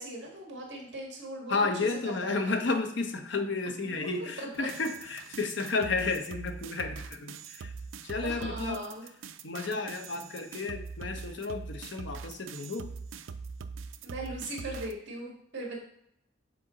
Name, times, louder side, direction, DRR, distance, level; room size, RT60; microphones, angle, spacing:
voice 1, 0.0-1.6 2.2-2.6 3.8-4.7 8.2-9.1 14.0-15.8, right 1 dB, 65° right, -1 dB, 1.8 m, -39 dB
voice 2, 1.5-7.7 8.0-8.8 9.4-12.9, left 3 dB, 65° left, 6 dB, 0.7 m, -32 dB
sound 1, 4.6-14.9, right 5 dB, 80° right, 0.4 m, -42 dB
6.8 x 3.8 x 3.8 m, 0.73 s
head